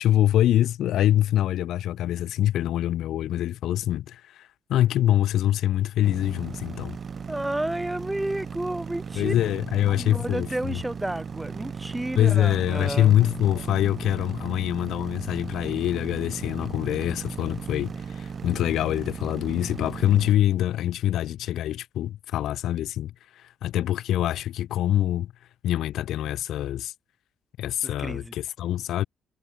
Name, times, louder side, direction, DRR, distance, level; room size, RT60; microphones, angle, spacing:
voice 1, 0.0-7.0 9.1-10.8 12.2-25.3 25.6-26.9 27.6-29.0, left 12 dB, 80° left, 4.0 m, -24 dB
sound 1, 6.0-20.3, right 6 dB, 45° right, 2.6 m, -36 dB
voice 2, 7.3-9.3 9.9-13.2 28.0-28.3, right 1 dB, 10° right, 2.6 m, -31 dB
cardioid pair, 90°, 0 cm